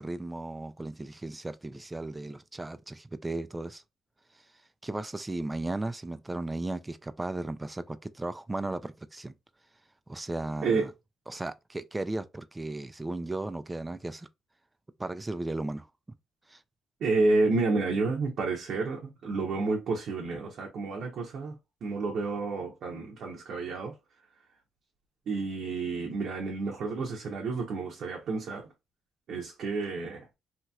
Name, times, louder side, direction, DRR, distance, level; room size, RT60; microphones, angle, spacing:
voice 1, 0.0-3.8 4.8-9.3 10.1-10.9 11.3-14.3 15.0-15.9 16.5-16.6, right 2 dB, 15° right, 0.3 m, -35 dB
voice 2, 17.0-21.6 21.8-23.9 25.3-28.7 29.3-30.2, right 3 dB, 65° right, 0.8 m, -30 dB
2.9 x 2.8 x 2.2 m
cardioid pair, 90°, 0 cm